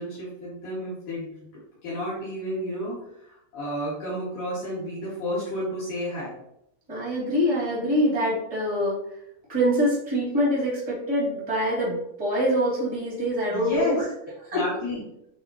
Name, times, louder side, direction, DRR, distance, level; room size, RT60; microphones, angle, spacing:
voice 1, 0.0-1.5 1.8-3.0 3.3-6.3 13.5-14.0 14.5-15.0, equal, 60° left, -9 dB, 3.3 m, -31 dB
voice 2, 6.9-9.0 9.5-14.0 14.5-14.6, equal, 15° right, -5 dB, 1.5 m, -24 dB
8.8 x 3.7 x 2.9 m, 0.78 s
omnidirectional pair, 4.6 m